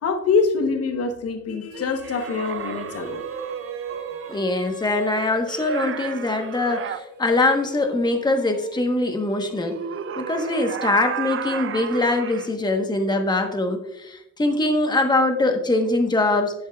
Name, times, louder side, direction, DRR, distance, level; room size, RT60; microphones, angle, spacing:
voice 1, 0.0-3.4, left 4 dB, 50° left, 6 dB, 0.9 m, -24 dB
Female singing, 1.7-10.9, right 2 dB, 80° right, 1.5 m, -45 dB
sound 1, 2.0-4.5 5.5-7.0 9.6-12.5, right 8 dB, 45° right, 0.6 m, -32 dB
voice 2, 4.3-9.8 10.2-16.5, left 2 dB, 15° left, 4 dB, 1.1 m, -22 dB
10.5 x 10.0 x 2.3 m, 0.89 s
cardioid pair, 90°, 30 cm